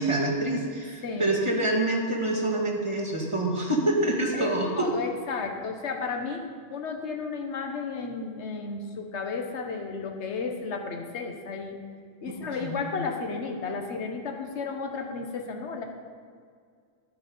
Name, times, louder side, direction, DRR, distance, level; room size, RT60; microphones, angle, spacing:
voice 1, 0.0-4.9 12.4-12.8, right 1 dB, 25° right, -1 dB, 2.0 m, -26 dB
voice 2, 4.3-6.4 6.7-11.8 12.2-15.8, left 4 dB, 60° left, 3 dB, 1.4 m, -33 dB
12.0 x 9.1 x 5.5 m, 2.1 s
omnidirectional pair, 1.3 m